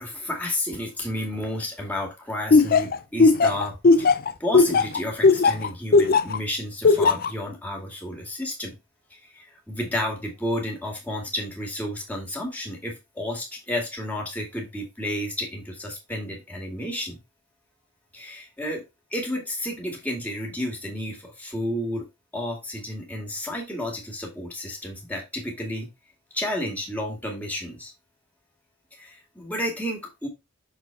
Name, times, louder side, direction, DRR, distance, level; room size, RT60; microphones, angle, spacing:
voice 1, 0.0-4.1 4.4-8.8 9.3-17.2 18.1-18.8 19.1-22.1 22.3-25.9 26.3-27.9 28.9-30.3, left 1 dB, 5° left, 0 dB, 2.2 m, -31 dB
Laughter, 2.5-6.4 6.8-7.3, left 4 dB, 45° left, 0.5 m, -16 dB
6.7 x 4.1 x 4.5 m, 0.24 s
head